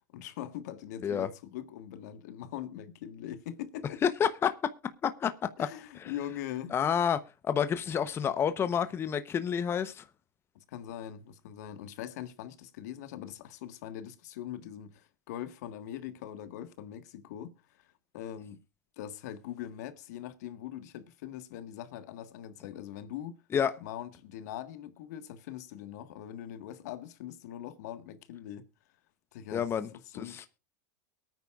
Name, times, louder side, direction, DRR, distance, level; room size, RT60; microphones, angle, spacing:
voice 1, 0.1-4.0 5.6-6.7 10.5-18.6 19.0-23.4 23.8-28.7 29.3-30.5, left 11 dB, 70° left, 1.6 m, -42 dB
voice 2, 4.0-4.6 5.0-5.3 6.7-10.1 23.5-23.7 29.5-29.9 30.1-30.5, left 8 dB, 25° left, 0.9 m, -29 dB
22.5 x 9.4 x 2.5 m
hypercardioid pair, 115°, 9 cm